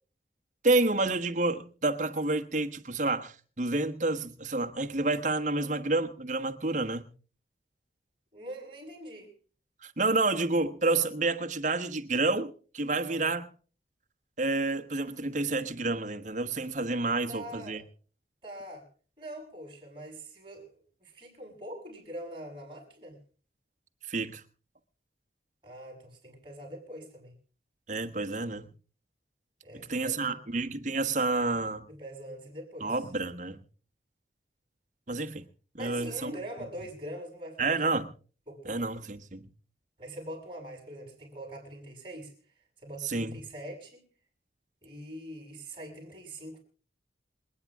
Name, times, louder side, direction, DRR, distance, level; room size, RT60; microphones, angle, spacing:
voice 1, 0.6-7.0 9.8-13.5 14.4-17.8 24.1-24.4 27.9-28.7 29.9-31.9 32.8-33.6 35.1-35.4 35.7-36.3 36.6-36.7 37.6-38.1 38.6-39.5 43.0-43.4, right 3 dB, 45° right, 1.2 m, -29 dB
voice 2, 8.3-9.3 13.1-13.3 17.3-17.8 18.4-18.9 19.2-23.2 25.6-27.4 29.6-30.4 31.9-32.9 35.8-37.8 38.5-38.8 40.0-42.3 42.8-44.0 44.8-46.6, right 1 dB, 30° right, 6.3 m, -43 dB
27.0 x 9.5 x 3.6 m
head